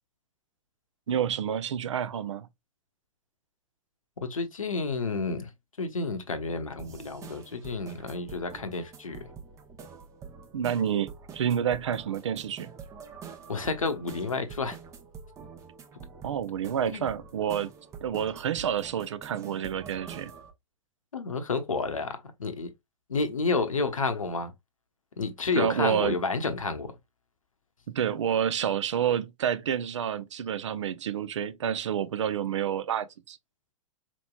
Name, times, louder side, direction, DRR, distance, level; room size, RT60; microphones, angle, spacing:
voice 1, 1.1-2.5 10.5-12.7 16.2-17.7 18.0-20.3 25.6-26.2 27.9-33.4, right 9 dB, 60° right, 0.5 m, -29 dB
voice 2, 4.2-5.5 5.8-9.3 13.5-14.8 16.9-17.1 21.1-22.7 23.1-24.5 25.2-26.9, left 4 dB, 75° left, 0.8 m, -30 dB
sound 1, 6.8-20.5, right 6 dB, 20° right, 0.6 m, -46 dB
4.4 x 3.0 x 2.2 m
figure-of-eight pair, 105°, 18 cm